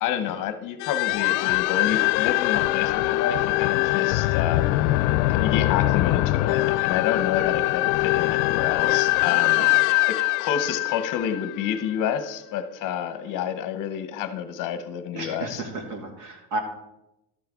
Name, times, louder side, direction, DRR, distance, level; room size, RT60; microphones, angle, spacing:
voice 1, 0.0-4.7 5.3-9.6 10.1-15.6, left 9 dB, 40° left, 10 dB, 0.8 m, -29 dB
sound 1, 0.8-12.0, left 18 dB, 70° left, 0.5 m, -23 dB
voice 2, 15.1-16.6, right 2 dB, 80° right, 4 dB, 2.3 m, -33 dB
12.5 x 8.7 x 3.6 m, 0.89 s
cardioid pair, 150°, 48 cm